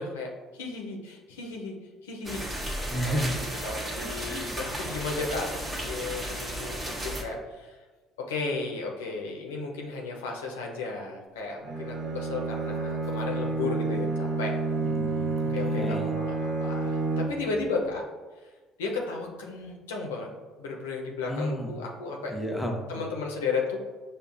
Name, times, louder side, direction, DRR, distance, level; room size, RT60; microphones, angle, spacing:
voice 1, 0.0-1.8 2.0-2.4 3.0-7.8 8.3-14.5 15.5-18.0 18.4-18.5 18.8-20.3 20.6-22.3 22.9-23.8, left 4 dB, 90° left, 0 dB, 0.5 m, -34 dB
sound 1, 2.2-7.2, right 1 dB, 20° right, 0.9 m, -34 dB
voice 2, 2.9-3.6 4.0-4.6 14.8-16.2 21.3-21.7 22.3-23.0, equal, 10° left, 1 dB, 0.7 m, -33 dB
Bowed string instrument, 11.6-17.6, right 3 dB, 50° right, 0.6 m, -29 dB
5.4 x 2.0 x 2.4 m, 1.3 s
hypercardioid pair, 65°, 0 cm